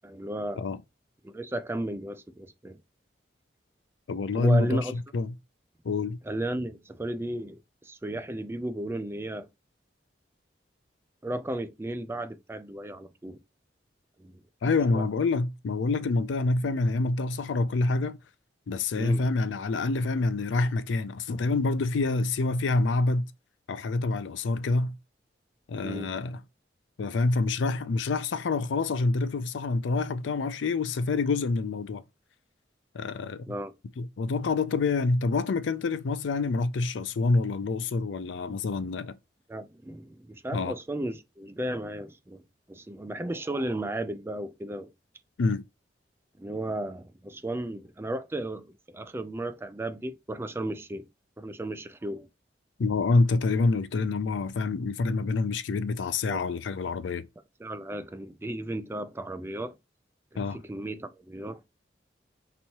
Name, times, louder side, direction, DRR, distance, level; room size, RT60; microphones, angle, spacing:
voice 1, 0.0-0.7 1.2-2.8 4.4-4.9 6.2-9.5 11.2-13.4 14.2-14.4 14.9-15.1 18.9-19.3 25.8-26.2 33.5-33.7 39.5-42.4 42.7-44.9 46.4-51.1 51.4-52.3 56.2-56.4 57.6-59.7 60.3-61.6, right 1 dB, 15° right, 0.3 m, -34 dB
voice 2, 4.1-5.3 5.8-6.2 14.6-18.2 18.7-23.3 23.7-24.9 25.7-26.4 27.0-32.0 32.9-33.5 34.0-39.1 40.5-40.7 45.4-45.6 52.8-57.2 60.4-60.6, left 3 dB, 85° left, 0.4 m, -27 dB
5.4 x 3.0 x 2.8 m
head